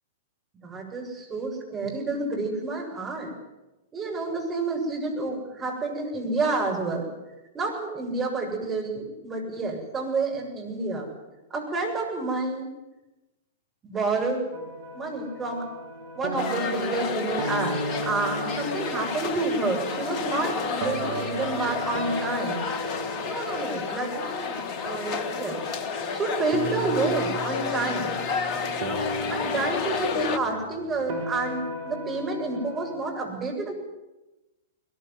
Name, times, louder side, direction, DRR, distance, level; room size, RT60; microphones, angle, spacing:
voice 1, 0.6-3.3 3.9-7.1 7.5-11.1 11.5-12.7 13.8-14.4 14.9-15.7 16.2-22.7 23.2-24.6 24.8-25.6 26.1-28.2 29.2-33.7, right 3 dB, 20° right, 0 dB, 7.7 m, -29 dB
sound 1, 14.5-33.0, right 1 dB, 55° right, 4.3 m, -35 dB
sound 2, 16.3-30.4, left 5 dB, 35° left, 1.4 m, -31 dB
21.5 x 20.5 x 9.6 m, 1.0 s
figure-of-eight pair, 105°, 0 cm